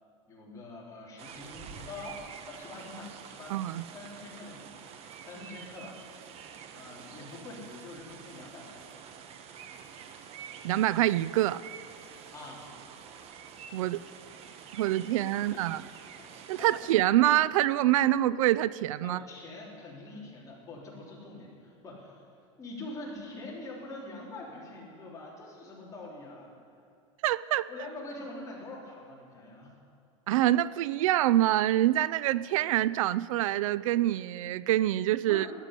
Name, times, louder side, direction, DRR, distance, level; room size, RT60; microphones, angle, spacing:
voice 1, 0.3-6.0 6.7-8.9 12.3-12.7 14.8-15.6 16.2-16.3 16.6-16.7 19.0-22.3 22.6-26.5 27.7-29.8 35.3-35.5, left 2 dB, 20° left, -4 dB, 3.4 m, -45 dB
sound 1, 1.2-16.9, right 7 dB, 35° right, 1.1 m, -47 dB
voice 2, 3.5-3.8 10.6-11.6 13.7-14.0 14.7-15.8 16.5-19.2 27.2-27.7 30.3-35.5, right 14 dB, 85° right, 18 dB, 0.4 m, -26 dB
12.5 x 9.0 x 9.9 m, 2.4 s
supercardioid pair, 140°, 17 cm